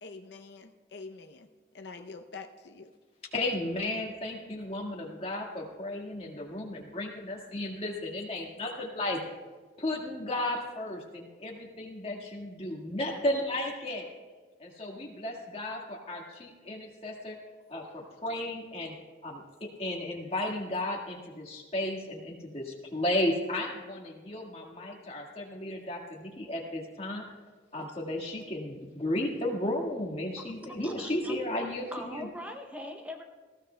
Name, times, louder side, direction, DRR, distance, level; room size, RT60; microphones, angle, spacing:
voice 1, 0.0-1.5 1.7-2.9, left 4 dB, 70° left, 5 dB, 0.6 m, -45 dB
voice 2, 3.3-9.2 9.8-14.1 14.6-17.4 17.7-19.0 19.2-27.2 27.7-32.3, left 1 dB, 35° left, 0 dB, 1.7 m, -34 dB
voice 3, 30.4-31.3 31.9-33.2, equal, 10° right, 4 dB, 0.6 m, -41 dB
19.5 x 15.5 x 2.2 m, 1.4 s
head